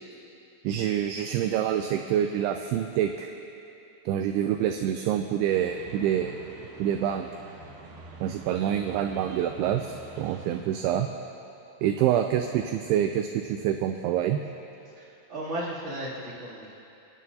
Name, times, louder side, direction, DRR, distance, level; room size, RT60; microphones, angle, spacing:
voice 1, 0.6-3.3 4.1-7.3 8.2-11.1 11.8-14.4, right 10 dB, 85° right, 5 dB, 2.3 m, -27 dB
sound 1, 5.5-10.6, right 3 dB, 65° right, 2.5 m, -46 dB
voice 2, 14.9-16.7, right 1 dB, 20° right, -8 dB, 2.3 m, -35 dB
26.0 x 11.0 x 2.8 m, 2.8 s
omnidirectional pair, 5.0 m